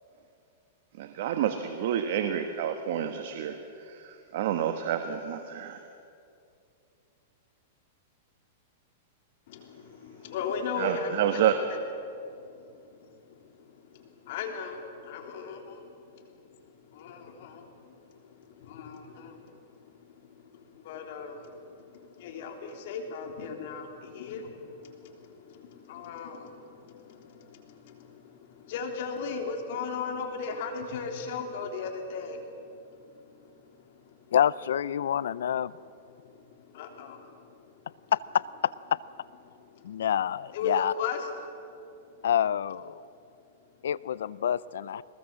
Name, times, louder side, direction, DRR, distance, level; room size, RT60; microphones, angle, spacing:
voice 1, 1.0-3.6 3.9-5.8 10.8-11.5, right 10 dB, 60° right, 7 dB, 1.3 m, -29 dB
voice 2, 9.5-34.3 35.8-38.1 39.4-40.1 40.5-42.3 43.1-43.9, left 5 dB, 60° left, 3 dB, 3.5 m, -39 dB
voice 3, 34.3-35.7 38.1-39.0 39.8-40.9 42.2-43.0 43.8-45.0, left 9 dB, 80° left, 20 dB, 0.6 m, -27 dB
22.0 x 20.5 x 7.5 m, 2.6 s
hypercardioid pair, 135°, 0 cm